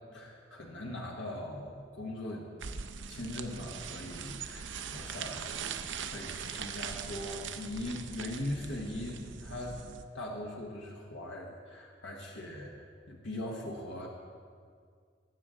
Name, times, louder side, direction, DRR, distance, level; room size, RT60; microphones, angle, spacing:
voice 1, 0.1-2.5 3.1-5.7 6.0-9.8 10.1-14.1, left 1 dB, 85° left, -1 dB, 1.3 m, -40 dB
sound 1, 2.6-10.0, right 6 dB, 80° right, 0.6 m, -41 dB
19.5 x 7.7 x 3.7 m, 2.1 s
head